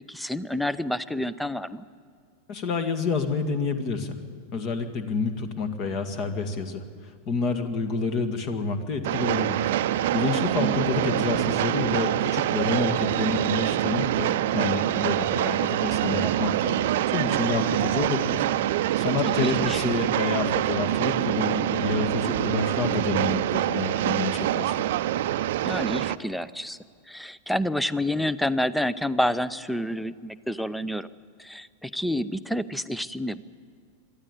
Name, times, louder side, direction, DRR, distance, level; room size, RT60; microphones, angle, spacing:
voice 1, 0.1-1.8 10.6-10.9 19.2-19.8 25.7-26.8 27.1-31.1 31.4-33.4, left 1 dB, ahead, 17 dB, 0.6 m, -29 dB
voice 2, 2.5-4.2 4.5-6.8 7.3-9.7 10.1-16.8 17.1-18.5 19.0-24.8, left 4 dB, 40° left, 8 dB, 2.0 m, -28 dB
Train, 9.0-26.2, right 13 dB, 55° right, 0.6 m, -25 dB
23.5 x 13.5 x 9.7 m, 2.1 s
figure-of-eight pair, 90°, 0 cm